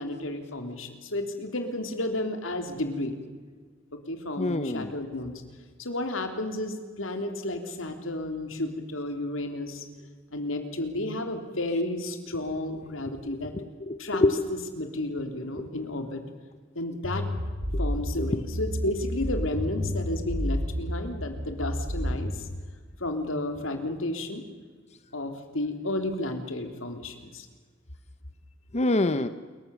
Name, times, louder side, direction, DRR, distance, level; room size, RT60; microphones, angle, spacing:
voice 1, 0.0-3.1 3.9-5.4 5.8-9.9 10.3-13.5 14.0-14.2 14.5-16.2 16.8-17.3 17.8-22.5 23.0-24.4 25.1-27.5, left 1 dB, 80° left, 6 dB, 3.6 m, -32 dB
voice 2, 4.4-4.9 13.5-14.3 15.6-15.7 18.2-18.3 28.7-29.3, left 2 dB, 35° left, 11 dB, 0.9 m, -26 dB
sound 1, 17.0-22.4, equal, 65° right, 7.6 m, -30 dB
28.0 x 23.0 x 7.3 m, 1.5 s
head